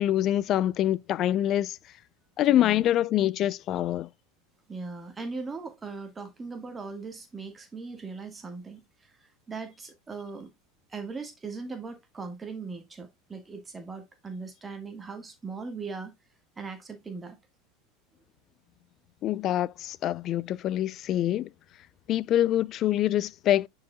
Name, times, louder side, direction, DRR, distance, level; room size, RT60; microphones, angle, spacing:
voice 1, 0.0-1.8 2.4-4.1 19.2-21.5 22.1-23.7, left 12 dB, 45° left, 0.6 m, -25 dB
voice 2, 2.5-2.8 4.7-10.5 10.9-16.1 16.6-17.4, right 4 dB, 20° right, 1.6 m, -39 dB
10.0 x 4.9 x 2.3 m
hypercardioid pair, 90°, 0 cm